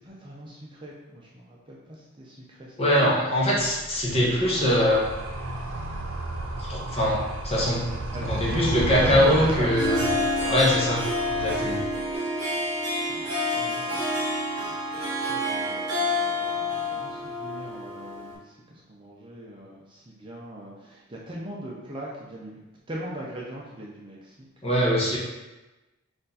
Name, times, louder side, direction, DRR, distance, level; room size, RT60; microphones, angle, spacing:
voice 1, 0.0-3.1 3.5-3.7 8.1-11.0 12.0-12.1 12.6-22.6 22.9-24.5 24.9-25.2, right 1 dB, 25° right, -5 dB, 0.6 m, -40 dB
voice 2, 2.8-5.0 6.6-7.8 8.2-10.0 10.5-11.0 11.3-11.8 24.6-25.2, equal, 30° left, -5 dB, 0.9 m, -22 dB
Animal, 3.5-12.1, right 2 dB, 80° right, 0.6 m, -33 dB
Harp, 9.6-18.3, left 1 dB, 50° right, 1.4 m, -28 dB
4.4 x 2.6 x 4.0 m, 1.1 s
head